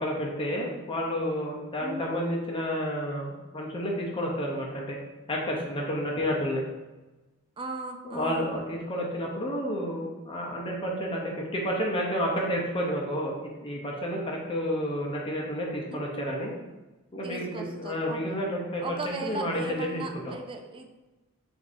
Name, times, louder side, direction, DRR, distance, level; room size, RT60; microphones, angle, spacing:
voice 1, 0.0-5.0 5.3-6.6 8.1-16.5 17.1-20.3, equal, 25° left, -2 dB, 0.6 m, -30 dB
voice 2, 1.8-2.1 7.6-8.5 15.9-16.2 17.2-18.2 18.8-20.9, right 3 dB, 25° right, 4 dB, 0.4 m, -37 dB
6.2 x 2.6 x 2.6 m, 1.1 s
head